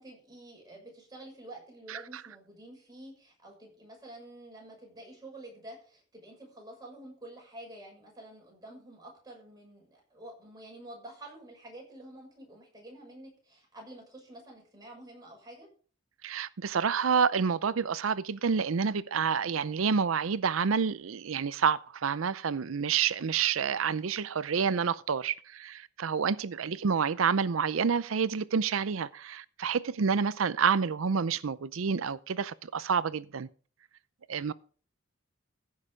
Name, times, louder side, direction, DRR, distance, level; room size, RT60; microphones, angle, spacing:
voice 1, 0.0-15.7, right 1 dB, 20° right, 6.7 m, -49 dB
voice 2, 1.9-2.2 16.2-33.5 34.3-34.5, right 6 dB, 85° right, 0.5 m, -28 dB
15.0 x 6.6 x 5.0 m
head